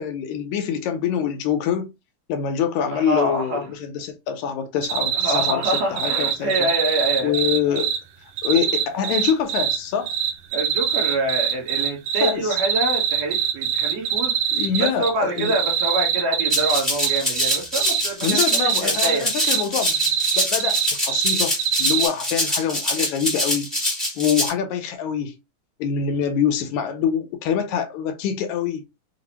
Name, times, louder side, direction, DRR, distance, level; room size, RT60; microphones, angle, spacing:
voice 1, 0.0-1.9 2.3-6.7 7.2-7.9 8.4-10.1 12.2-12.6 14.5-15.5 18.2-20.0 20.4-20.8 21.0-23.7 24.2-25.3 25.8-28.8, left 8 dB, 85° left, 2.0 m, -25 dB
voice 2, 2.9-3.7 5.1-7.3 10.5-14.3 14.8-19.3, right 1 dB, 65° right, 2.0 m, -26 dB
sound 1, 4.8-8.0 8.4-9.8 10.1-15.1 15.4-22.1, right 9 dB, 85° right, 2.1 m, -23 dB
Rattle (instrument), 16.5-24.5, left 1 dB, ahead, 0.4 m, -25 dB
5.8 x 2.0 x 2.8 m
omnidirectional pair, 3.4 m